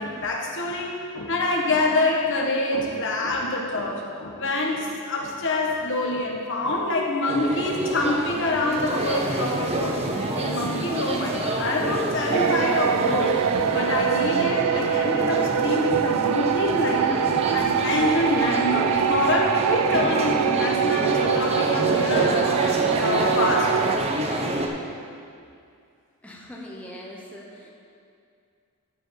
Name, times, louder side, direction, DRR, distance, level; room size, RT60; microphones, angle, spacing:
voice 1, 0.0-10.0 10.3-13.3 13.7-17.3 17.5-23.7, left 2 dB, 55° left, -1 dB, 1.1 m, -26 dB
sound 1, 7.3-24.7, right 1 dB, 30° right, 0.7 m, -28 dB
sound 2, 12.3-24.0, right 8 dB, 90° right, 0.3 m, -24 dB
voice 2, 26.2-27.7, equal, 5° left, -4 dB, 0.9 m, -41 dB
11.0 x 4.9 x 5.7 m, 2.4 s
head